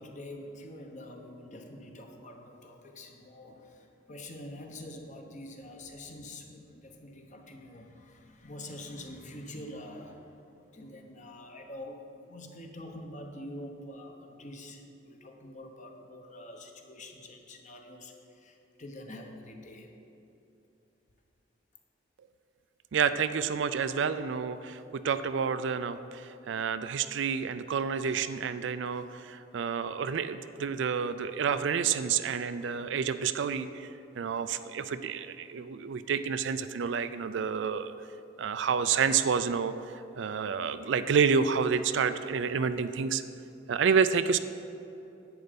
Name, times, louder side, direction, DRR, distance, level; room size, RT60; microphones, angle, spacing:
voice 1, 0.0-10.3 10.6-19.9, left 1 dB, 40° left, 3 dB, 1.1 m, -46 dB
voice 2, 22.9-33.9 34.2-37.9 38.4-39.7 40.2-43.2 43.7-44.4, right 6 dB, 65° right, 11 dB, 0.4 m, -29 dB
10.5 x 7.9 x 5.2 m, 2.9 s
head